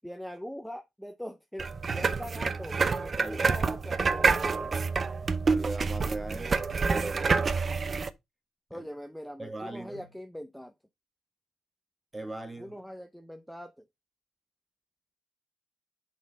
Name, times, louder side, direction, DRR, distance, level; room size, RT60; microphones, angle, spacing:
voice 1, 0.0-1.7 1.9-4.7 8.7-10.7 12.6-13.8, equal, ahead, 0.8 m, -42 dB
sound 1, 1.6-8.1, right 4 dB, 40° right, 0.7 m, -27 dB
voice 2, 5.4-7.5 8.7-8.9 9.4-10.1 12.1-12.8, right 2 dB, 15° right, 1.9 m, -39 dB
5.8 x 4.2 x 5.2 m
cardioid pair, 90°, 0 cm